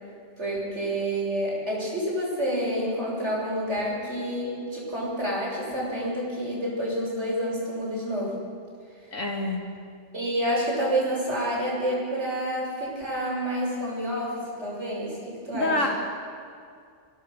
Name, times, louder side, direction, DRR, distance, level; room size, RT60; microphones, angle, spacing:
voice 1, 0.4-8.4 10.1-15.8, equal, 60° right, -4 dB, 6.9 m, -28 dB
voice 2, 9.1-9.6 15.5-15.9, left 2 dB, 80° left, 1 dB, 3.4 m, -26 dB
26.5 x 18.0 x 6.7 m, 2.3 s
omnidirectional pair, 1.3 m